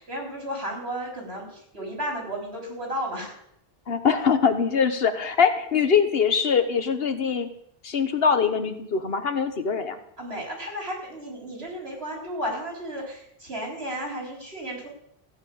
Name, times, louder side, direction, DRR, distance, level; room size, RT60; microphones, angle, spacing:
voice 1, 0.0-3.3 10.2-14.9, equal, 80° right, -1 dB, 4.2 m, -33 dB
voice 2, 3.9-7.5 7.8-10.0, left 6 dB, 70° left, 9 dB, 1.3 m, -23 dB
15.0 x 5.9 x 8.5 m, 0.73 s
omnidirectional pair, 1.0 m